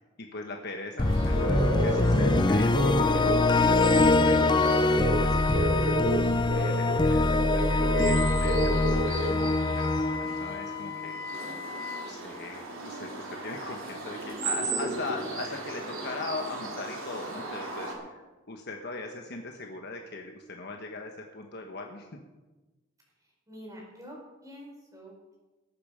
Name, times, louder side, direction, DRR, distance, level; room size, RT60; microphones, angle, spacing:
voice 1, 0.0-6.0 6.5-11.2 12.0-22.2, left 3 dB, 55° left, 3 dB, 1.2 m, -40 dB
sound 1, 1.0-11.2, left 2 dB, 25° left, 0.6 m, -24 dB
sound 2, 1.0-17.9, right 2 dB, 80° right, 3.2 m, -33 dB
Wind instrument woodwind instrument, 7.5-12.1, left 5 dB, 45° right, 4.9 m, -38 dB
voice 2, 9.1-9.8 11.3-11.6 16.7-16.8 23.5-24.2 24.4-25.4, equal, 15° right, -2 dB, 4.6 m, -47 dB
19.0 x 8.8 x 5.1 m, 1.2 s
head